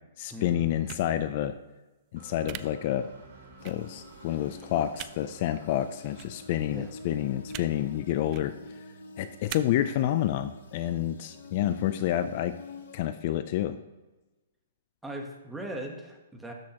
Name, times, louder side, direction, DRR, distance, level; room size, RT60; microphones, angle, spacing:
voice 1, 0.2-1.5 2.1-3.1 3.6-8.5 9.2-12.5 12.9-13.8, left 12 dB, 40° left, 11 dB, 0.4 m, -29 dB
sound 1, 0.9-1.0 2.5-2.6 3.6-3.7 4.9-5.1 6.2-6.3 7.5-7.7 8.2-8.4 9.5-9.6, right 16 dB, 30° right, 0.3 m, -39 dB
sound 2, 2.2-13.9, right 2 dB, 60° right, 2.6 m, -54 dB
sound 3, 3.6-13.0, left 4 dB, 75° left, 1.3 m, -48 dB
voice 2, 15.0-16.5, right 1 dB, 5° right, 1 dB, 1.1 m, -39 dB
12.5 x 6.3 x 2.9 m, 1.2 s
hypercardioid pair, 150°, 0 cm